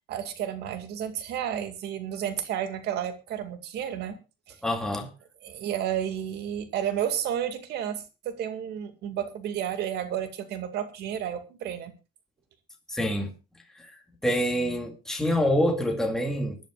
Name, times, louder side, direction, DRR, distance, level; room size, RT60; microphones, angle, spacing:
voice 1, 0.1-4.2 4.5-4.6 5.4-11.9, right 10 dB, 75° right, 2.3 m, -31 dB
voice 2, 4.6-5.1 12.9-13.3 13.8-16.6, equal, 5° left, 2.3 m, -26 dB
24.0 x 11.0 x 2.5 m
cardioid pair, 110°, 17 cm